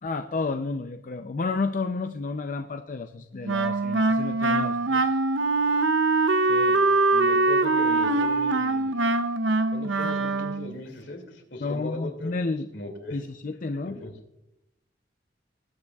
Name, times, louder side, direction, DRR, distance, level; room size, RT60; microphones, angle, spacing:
voice 1, 0.0-5.1 9.9-10.1 11.6-12.7 13.1-14.0, left 3 dB, 45° left, 7 dB, 0.5 m, -31 dB
Wind instrument woodwind instrument, 3.4-10.8, right 3 dB, 85° right, 0.7 m, -23 dB
voice 2, 6.4-6.8 7.1-8.9 9.7-12.4 12.7-13.2 14.0-14.1, left 1 dB, 70° left, 3 dB, 2.4 m, -38 dB
20.0 x 9.5 x 2.3 m, 0.87 s
head